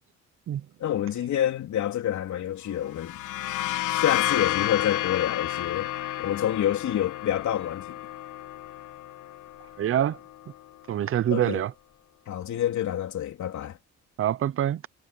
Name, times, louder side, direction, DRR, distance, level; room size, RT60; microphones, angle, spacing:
voice 1, 0.8-3.2 3.9-5.9 6.2-8.0 11.3-11.6 12.3-13.8, left 11 dB, 70° left, 3.2 m, -28 dB
sound 1, 2.9-10.4, left 14 dB, 90° left, 1.2 m, -31 dB
voice 2, 9.8-10.2 10.9-11.7 14.2-14.9, right 11 dB, 45° right, 0.5 m, -25 dB
cardioid pair, 90°, 30 cm